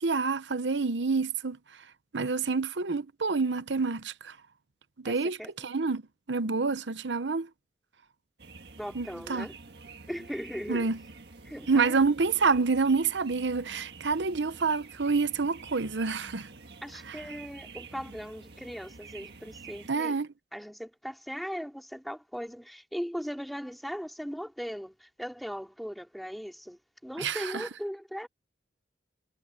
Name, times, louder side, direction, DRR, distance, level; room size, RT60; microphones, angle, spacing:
voice 1, 0.0-1.6 2.1-4.4 5.0-6.0 6.3-7.5 8.9-9.5 10.7-11.0 11.7-16.5 19.9-20.3 27.2-27.6, right 4 dB, 80° right, 0.9 m, -28 dB
voice 2, 5.0-5.7 8.8-9.5 10.1-10.9 11.4-12.0 16.8-20.2 20.5-28.3, equal, ahead, 3.2 m, -39 dB
sound 1, 8.4-19.9, right 4 dB, 65° right, 1.7 m, -48 dB
head